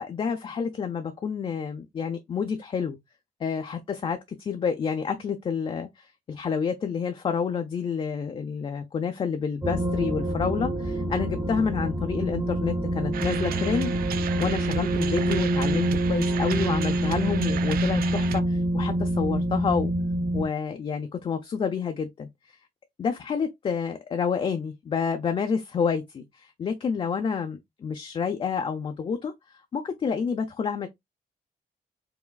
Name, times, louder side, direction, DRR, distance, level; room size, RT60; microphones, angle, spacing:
voice 1, 0.0-3.0 3.4-13.9 14.4-19.9 20.3-22.6 23.0-29.3 29.7-30.9, left 6 dB, 35° left, 0.4 m, -29 dB
sound 1, 9.6-20.5, right 1 dB, 10° right, 0.6 m, -26 dB
sound 2, 13.1-18.4, right 10 dB, 90° right, 0.4 m, -34 dB
4.7 x 3.0 x 2.2 m
wide cardioid pair, 155°, 15 cm